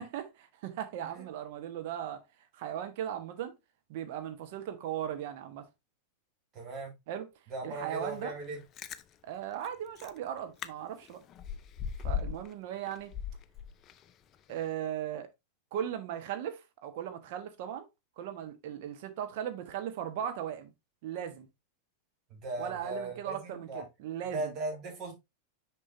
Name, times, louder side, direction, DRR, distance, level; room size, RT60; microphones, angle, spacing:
voice 1, 0.0-2.2 2.5-3.5 3.9-5.7 7.1-7.3 7.6-8.3 9.2-11.2 12.0-13.1 14.5-15.3 15.7-17.8 18.2-20.7 21.0-21.5 22.6-24.5, right 10 dB, 50° right, 1.3 m, -37 dB
voice 2, 6.5-6.9 7.5-8.6 12.1-12.4 22.3-23.8 24.3-25.1, right 2 dB, 35° right, 2.7 m, -38 dB
Chewing mastication, 8.5-9.0 9.6-9.7 10.0-10.2 10.6-10.7 11.0-12.5 12.9-14.1 14.5-14.6, left 8 dB, 30° left, 0.5 m, -37 dB
6.5 x 5.3 x 2.8 m
figure-of-eight pair, 90°, 0 cm